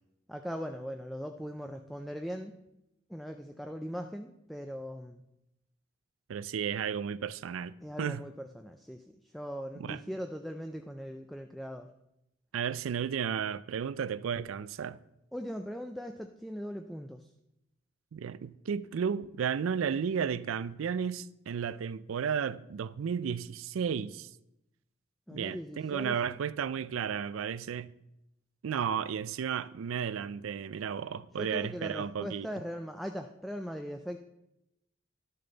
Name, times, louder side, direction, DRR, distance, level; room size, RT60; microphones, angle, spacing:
voice 1, 0.3-2.5 3.1-5.2 7.8-11.9 15.3-17.3 25.3-26.2 31.4-34.2, equal, ahead, 0.3 m, -40 dB
voice 2, 6.3-7.7 8.0-8.2 9.8-10.0 12.5-15.0 18.1-24.3 25.3-27.9 28.6-32.5, right 7 dB, 80° right, 0.4 m, -33 dB
11.5 x 6.7 x 3.9 m
head